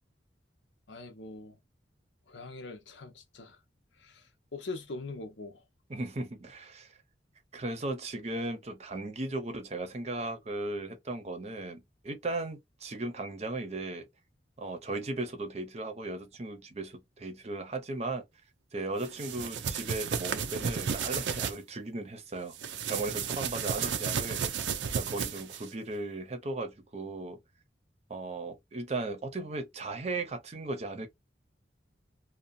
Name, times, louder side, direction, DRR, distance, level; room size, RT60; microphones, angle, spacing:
voice 1, 0.9-1.6 2.3-3.6 4.0-5.6, left 3 dB, 75° left, 0.8 m, -42 dB
voice 2, 5.9-6.9 7.5-14.1 14.6-18.2 18.7-22.5 22.9-24.6 24.9-27.4 28.1-31.1, right 2 dB, 35° right, 0.7 m, -36 dB
sound 1, 19.0-21.5 22.5-25.7, right 7 dB, 75° right, 0.5 m, -33 dB
2.7 x 2.3 x 2.5 m
head